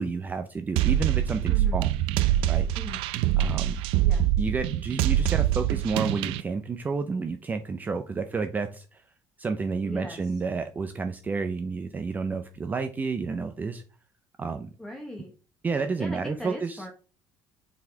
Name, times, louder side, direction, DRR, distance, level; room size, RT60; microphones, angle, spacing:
voice 1, 0.0-1.9 2.5-2.7 3.4-3.8 4.4-9.0 9.4-13.8 14.4-14.7 15.6-16.8, right 4 dB, 20° right, 7 dB, 0.5 m, -30 dB
sound 1, 0.8-6.4, right 12 dB, 75° right, 0.5 m, -24 dB
voice 2, 1.5-1.8 2.7-3.0 4.0-4.3 9.8-10.3 14.8-15.3 16.0-16.9, left 1 dB, 5° left, 1 dB, 0.9 m, -39 dB
7.0 x 4.1 x 4.9 m, 0.36 s
cardioid pair, 155°, 9 cm